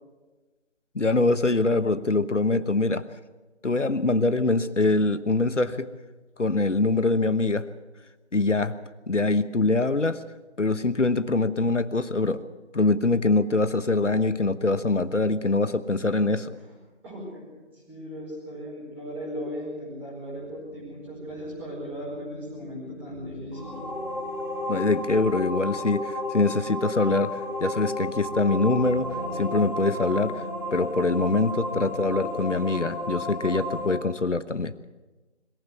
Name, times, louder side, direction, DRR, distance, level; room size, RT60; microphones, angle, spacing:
voice 1, 0.9-3.0 3.6-5.9 6.4-7.7 8.3-8.7 9.1-10.2 10.6-12.4 12.7-16.5 24.7-30.4 30.7-34.7, left 3 dB, 80° left, 13 dB, 1.2 m, -24 dB
voice 2, 17.0-17.5 17.9-23.7, equal, 5° right, -7 dB, 4.7 m, -37 dB
sound 1, 20.4-33.9, left 1 dB, 20° left, 6.1 m, -33 dB
22.0 x 15.0 x 8.2 m, 1.2 s
figure-of-eight pair, 160°, 36 cm